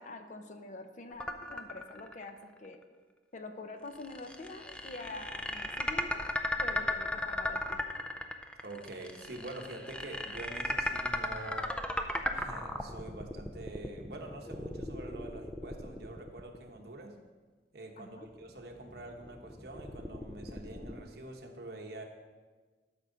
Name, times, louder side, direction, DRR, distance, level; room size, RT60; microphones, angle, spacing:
voice 1, 0.0-2.8 3.3-6.3 6.6-7.8 18.0-18.3, left 2 dB, 45° left, 7 dB, 0.7 m, -46 dB
sound 1, 1.2-2.3 2.6-2.7 3.9-17.0 18.2-21.0, left 1 dB, 5° left, 0.5 m, -36 dB
voice 2, 8.6-11.7 12.3-17.1 17.7-22.0, right 2 dB, 60° right, 2 dB, 1.1 m, -46 dB
12.5 x 6.2 x 4.0 m, 1.4 s
head